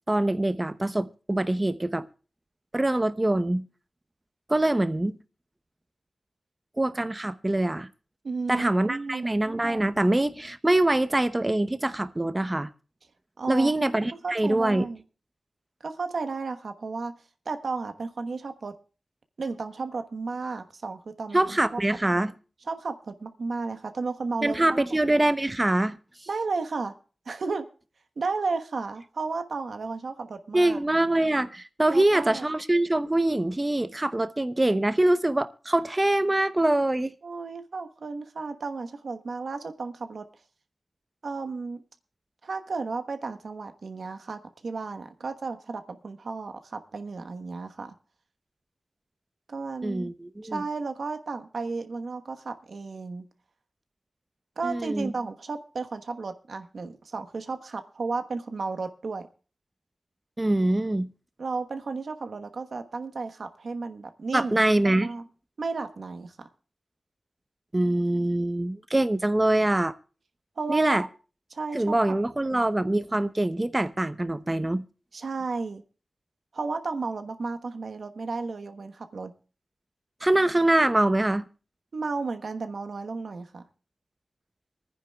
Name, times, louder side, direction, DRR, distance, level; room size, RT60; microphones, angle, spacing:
voice 1, 0.1-2.1 2.7-3.6 4.5-5.2 6.8-7.9 8.5-12.7 13.5-14.9 21.3-22.3 24.4-26.0 30.5-37.1 49.8-50.6 54.6-55.1 60.4-61.1 64.3-65.1 67.7-69.9 70.7-71.1 71.7-74.8 80.2-81.5, right 1 dB, 25° right, 0.8 m, -24 dB
voice 2, 8.2-9.3 13.4-13.7 14.2-15.0 15.8-17.2 17.4-18.8 19.4-21.8 22.7-24.8 26.3-26.9 27.3-27.7 28.2-30.8 31.9-32.5 37.2-40.3 41.2-41.8 42.4-47.9 49.5-50.1 50.5-53.3 54.6-59.3 61.4-64.6 65.0-65.2 65.6-66.5 70.6-71.1 71.5-72.0 72.5-72.6 75.1-75.8 76.5-79.3 81.9-83.6, right 4 dB, 75° right, 1.2 m, -33 dB
26.0 x 10.0 x 2.3 m
cardioid pair, 45°, 0 cm